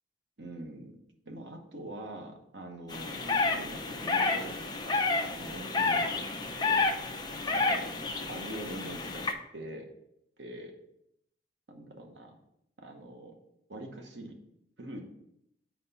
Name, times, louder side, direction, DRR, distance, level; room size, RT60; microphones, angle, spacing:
voice 1, 0.4-1.0 1.3-7.0 7.4-9.2 9.5-9.9 10.4-10.8 11.7-12.4 12.8-13.4 13.7-14.4 14.8-15.1, right 1 dB, 85° right, 3 dB, 1.0 m, -44 dB
sound 1, 2.9-9.3, left 3 dB, 25° left, 0.5 m, -30 dB
4.5 x 4.3 x 5.4 m, 0.77 s
head